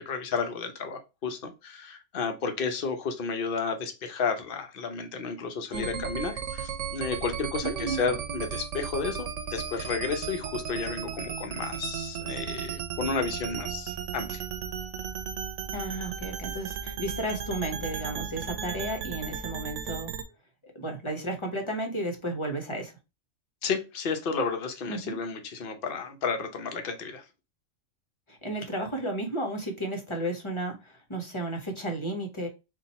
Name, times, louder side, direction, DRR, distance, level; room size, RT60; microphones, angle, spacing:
voice 1, 0.0-14.4 23.6-27.2, left 5 dB, 50° left, 1.0 m, -32 dB
voice 2, 5.7-6.0 7.6-8.1 15.7-20.1 20.7-22.9 24.9-25.2 28.3-32.5, right 1 dB, 25° left, 1.0 m, -33 dB
sound 1, 5.7-20.2, right 7 dB, 90° right, 1.0 m, -35 dB
4.2 x 2.6 x 4.2 m
omnidirectional pair, 1.2 m